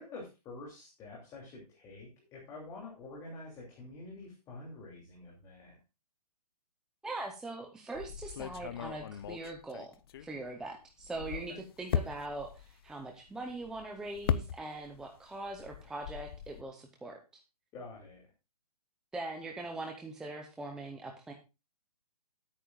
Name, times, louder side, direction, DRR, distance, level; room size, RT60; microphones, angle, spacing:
voice 1, 0.0-5.7 11.3-11.6 17.7-18.2, left 2 dB, 15° left, -2 dB, 2.8 m, -47 dB
voice 2, 7.0-9.9 10.2-17.4 19.1-21.3, right 2 dB, 5° right, 2 dB, 0.6 m, -41 dB
sound 1, 7.9-10.6 11.0-15.1 15.3-16.6, left 8 dB, 35° left, 0.6 m, -38 dB
15.5 x 8.8 x 2.4 m, 0.28 s
hypercardioid pair, 160°, 21 cm